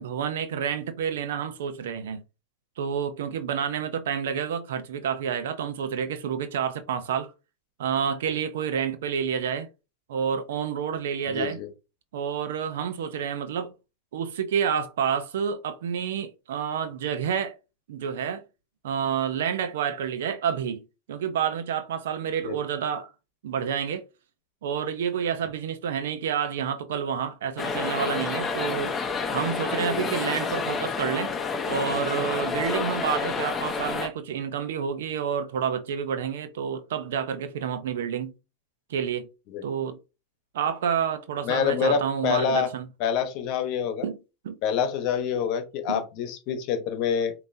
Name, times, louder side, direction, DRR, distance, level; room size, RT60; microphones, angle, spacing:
voice 1, 0.0-2.2 2.8-7.3 7.8-9.7 10.1-11.6 12.1-13.7 14.1-17.5 17.9-18.4 18.8-23.1 23.4-24.1 24.6-28.9 29.3-31.3 31.7-38.3 38.9-39.3 39.6-40.0 40.5-42.9 44.0-44.2 44.4-44.6 45.9-46.0, right 7 dB, 80° right, 0.7 m, -29 dB
voice 2, 11.3-11.7 22.4-22.5 29.9-30.1 39.5-39.6 41.4-42.7 43.0-44.0 44.6-47.3, left 7 dB, 55° left, 1.1 m, -26 dB
sound 1, 27.6-34.1, left 5 dB, 20° left, 0.8 m, -29 dB
5.2 x 2.9 x 2.7 m
hypercardioid pair, 120°, 0 cm